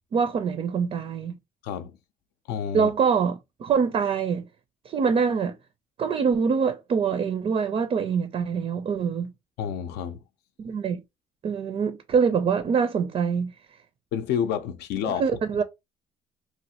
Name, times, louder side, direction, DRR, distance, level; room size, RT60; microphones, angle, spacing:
voice 1, 0.1-1.4 2.7-4.5 4.9-5.6 6.0-9.3 10.6-11.0 11.4-13.5 15.0-15.6, right 6 dB, 35° right, 0.4 m, -24 dB
voice 2, 2.5-2.9 9.6-10.2 14.1-15.2, left 8 dB, 80° left, 0.5 m, -29 dB
3.1 x 2.4 x 2.8 m
cardioid pair, 110°, 17 cm